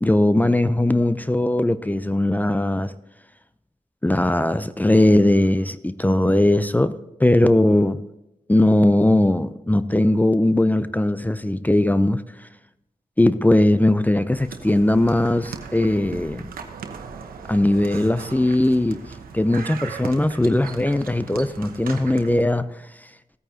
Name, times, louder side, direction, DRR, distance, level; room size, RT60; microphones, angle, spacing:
voice 1, 0.0-2.9 4.0-8.0 8.5-12.5 13.2-16.5 17.5-19.0 19.3-22.8, left 1 dB, 10° left, 0.6 m, -19 dB
sound 1, 14.3-22.4, right 5 dB, 90° right, 1.0 m, -38 dB
15.5 x 8.9 x 2.9 m
cardioid pair, 45°, 15 cm